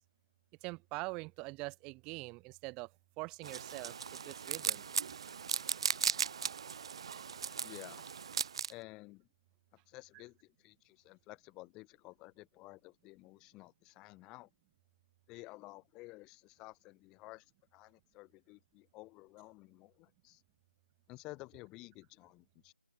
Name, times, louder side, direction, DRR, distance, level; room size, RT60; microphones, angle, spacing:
voice 1, 0.6-2.9 3.2-3.9 4.3-4.9, right 26 dB, 10° right, 2.2 m, -43 dB
sound 1, 3.4-8.7, right 7 dB, 35° right, 2.2 m, -37 dB
voice 2, 7.6-8.1 8.7-9.3 9.9-14.5 15.3-17.4 17.7-20.4 21.1-22.7, left 22 dB, 10° left, 3.2 m, -53 dB
open air
figure-of-eight pair, 165°, 5 cm